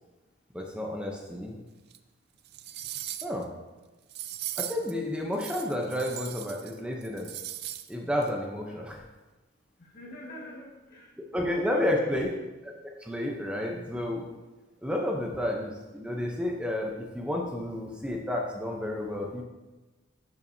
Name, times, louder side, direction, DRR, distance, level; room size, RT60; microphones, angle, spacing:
voice 1, 0.5-1.6 3.2-3.5 4.6-7.4 7.9-9.0 11.3-12.3 12.8-14.3 14.8-19.4, left 1 dB, 5° right, 0 dB, 0.6 m, -31 dB
sound 1, 1.9-2.0 2.5-3.4 4.1-4.9 5.3-6.7 7.0-7.9 8.2-8.3, right 12 dB, 55° right, 0.4 m, -38 dB
voice 2, 9.8-11.4 11.7-12.3, equal, 50° left, -2 dB, 1.6 m, -45 dB
11.0 x 5.6 x 2.7 m, 1.2 s
head